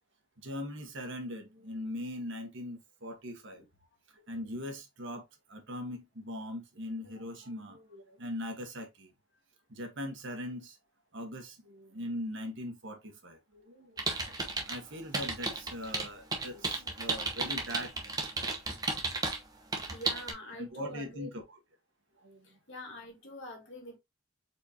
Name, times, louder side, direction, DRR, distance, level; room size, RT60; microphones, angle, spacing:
voice 1, 0.4-3.6 4.1-9.1 9.7-10.8 11.1-14.4 14.7-18.1 20.5-21.4 22.2-22.6, left 1 dB, 60° right, 1.3 m, -41 dB
sound 1, 14.0-14.8 15.1-19.4 19.7-20.3, right 3 dB, 20° right, 0.9 m, -33 dB
voice 2, 19.9-21.3 22.4-24.0, equal, 55° left, 1.8 m, -45 dB
4.5 x 4.3 x 2.7 m
head